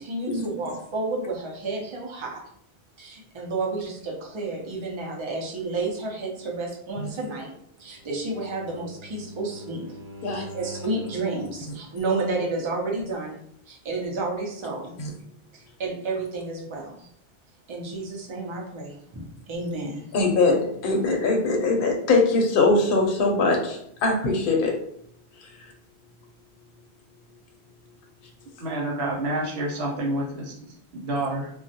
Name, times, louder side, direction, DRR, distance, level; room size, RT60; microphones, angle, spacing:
voice 1, 0.0-2.4 3.0-7.5 7.8-10.0 10.2-13.4 13.7-15.0 15.5-17.1 17.7-20.1, right 3 dB, 40° right, -1 dB, 0.5 m, -31 dB
Bowed string instrument, 7.9-11.6, right 1 dB, 25° left, 0.5 m, -43 dB
voice 2, 20.1-24.7 25.4-25.5, left 3 dB, 60° left, 1 dB, 0.7 m, -22 dB
voice 3, 28.6-31.5, right 1 dB, 90° right, -1 dB, 0.9 m, -29 dB
2.2 x 2.0 x 2.7 m, 0.66 s
omnidirectional pair, 1.1 m